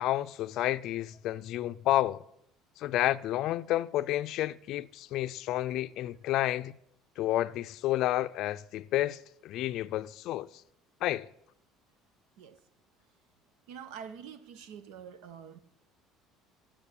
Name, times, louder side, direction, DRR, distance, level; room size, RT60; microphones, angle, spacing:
voice 1, 0.0-2.2 2.8-6.7 7.2-10.5 11.0-11.3, left 14 dB, 55° left, 0.4 m, -30 dB
voice 2, 13.7-15.6, right 7 dB, 85° right, 1.3 m, -46 dB
13.5 x 7.5 x 8.5 m
cardioid pair, 165°, 0 cm